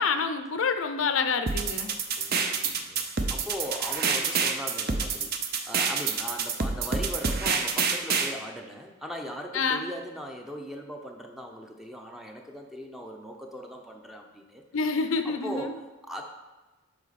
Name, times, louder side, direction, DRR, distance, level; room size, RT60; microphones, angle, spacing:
voice 1, 0.0-1.9 9.5-9.8 14.7-15.7, left 5 dB, 85° left, 8 dB, 0.6 m, -27 dB
sound 1, 1.5-8.3, right 5 dB, 50° right, 0.6 m, -27 dB
voice 2, 1.8-14.6 15.2-16.2, equal, ahead, 2 dB, 0.6 m, -39 dB
7.8 x 5.1 x 4.2 m, 1.2 s
head